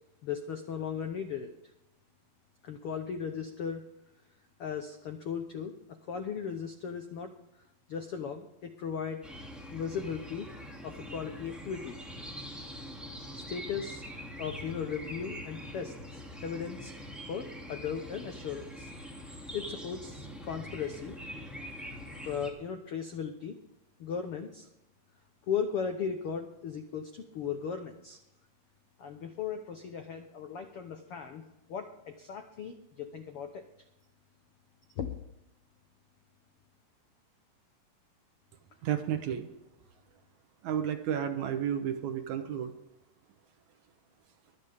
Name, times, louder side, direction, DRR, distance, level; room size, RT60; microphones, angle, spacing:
voice 1, 0.2-1.5 2.6-3.8 4.6-5.7 6.1-7.3 7.9-9.2 9.7-10.5 10.8-12.0 13.3-14.0 14.4-16.9 17.3-18.9 19.5-21.2 22.2-23.5 24.0-24.7 25.5-28.2 29.0-33.6 34.9-35.1, left 7 dB, 80° left, 6 dB, 1.2 m, -37 dB
sound 1, 9.2-22.5, equal, ahead, 1.9 m, -44 dB
voice 2, 38.8-39.5 40.6-42.7, right 9 dB, 70° right, 7 dB, 2.1 m, -32 dB
23.5 x 8.7 x 3.6 m, 0.87 s
omnidirectional pair, 3.9 m